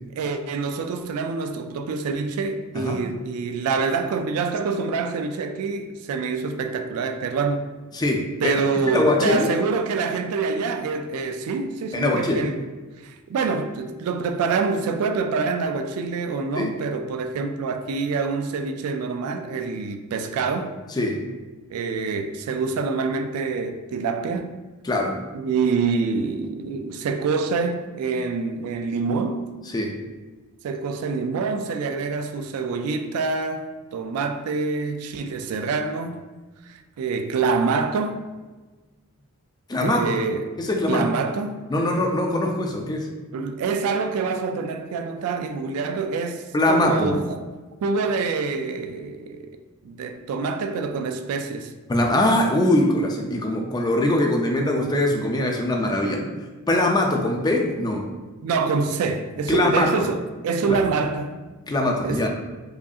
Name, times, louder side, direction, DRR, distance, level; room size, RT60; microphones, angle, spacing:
voice 1, 0.2-7.7 8.4-12.6 13.0-20.8 21.7-24.5 25.3-29.4 30.6-36.2 36.6-38.2 39.8-40.6 40.9-41.6 43.3-47.4 47.8-49.6 49.8-51.7 58.4-61.4 62.0-62.2, right 4 dB, 80° right, 0.3 m, -26 dB
voice 2, 7.9-8.5 8.9-9.5 11.9-12.5 16.6-16.7 21.0-21.2 24.8-25.2 29.7-29.9 39.7-40.1 40.6-41.1 41.7-43.1 46.5-47.2 51.9-56.3 56.7-58.1 59.5-60.1 60.7-60.8 61.7-62.3, left 1 dB, 20° left, 0.4 m, -22 dB
4.8 x 2.7 x 2.3 m
head